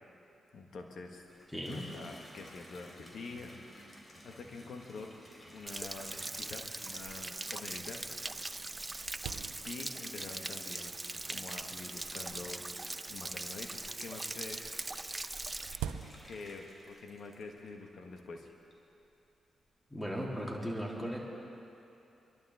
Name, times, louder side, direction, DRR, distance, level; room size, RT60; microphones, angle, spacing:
voice 1, 0.5-1.2 1.6-3.5 4.2-5.1 5.5-8.0 9.6-10.9 11.2-12.6 13.1-14.7 16.3-18.5, left 3 dB, 65° left, 3 dB, 1.6 m, -46 dB
Water tap faucet / Bathtub (filling or washing), 1.0-18.0 18.4-19.0, equal, 30° left, 3.1 m, -57 dB
Stream / Splash splatter / Trickle dribble, 5.7-15.8, right 2 dB, 25° right, 0.4 m, -41 dB
sound 1, 6.4-6.5 7.2-7.3 7.9-8.0 8.3-10.1 10.9-11.3 12.2-13.6 14.8-16.6, right 9 dB, 90° right, 0.5 m, -45 dB
voice 2, 19.9-21.2, equal, 15° left, -3 dB, 3.5 m, -37 dB
23.5 x 11.5 x 3.6 m, 2.8 s
supercardioid pair, 45°, 0 cm